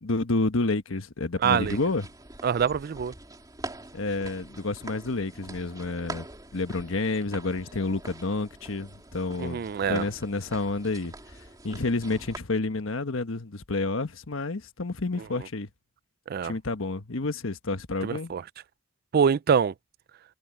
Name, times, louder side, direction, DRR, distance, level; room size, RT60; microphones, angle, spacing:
voice 1, 0.0-2.1 3.9-6.3 6.5-11.1 11.6-15.7 16.4-18.3, left 3 dB, 85° left, 1.2 m, -29 dB
sound 1, 1.4-12.4, right 2 dB, 20° right, 3.5 m, -44 dB
voice 2, 1.4-1.8 2.4-3.1 9.4-10.1 16.3-16.5 18.0-18.4 19.1-19.7, right 7 dB, 50° right, 0.4 m, -24 dB
head